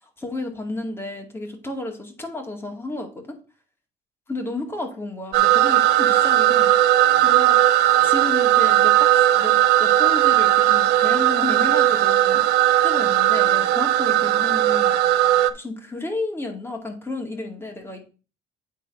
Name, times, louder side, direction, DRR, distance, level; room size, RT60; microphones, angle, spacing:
voice 1, 0.2-3.4 4.3-6.7 7.2-7.6 8.0-15.0 15.5-18.1, left 2 dB, 15° left, 3 dB, 2.1 m, -32 dB
sound 1, 5.3-15.5, right 13 dB, 80° right, 0.6 m, -17 dB
8.5 x 4.1 x 5.4 m, 0.34 s
cardioid pair, 110°, 17 cm